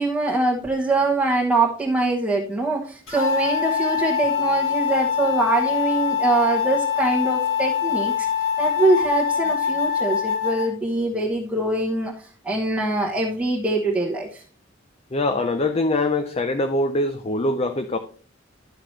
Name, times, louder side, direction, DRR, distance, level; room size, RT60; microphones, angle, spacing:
voice 1, 0.0-8.3 8.6-14.4, right 2 dB, 5° right, 1.2 m, -23 dB
sound 1, 3.1-10.7, left 7 dB, 85° left, 3.0 m, -24 dB
voice 2, 15.1-18.0, left 2 dB, 30° left, 0.5 m, -23 dB
11.5 x 5.8 x 3.2 m
head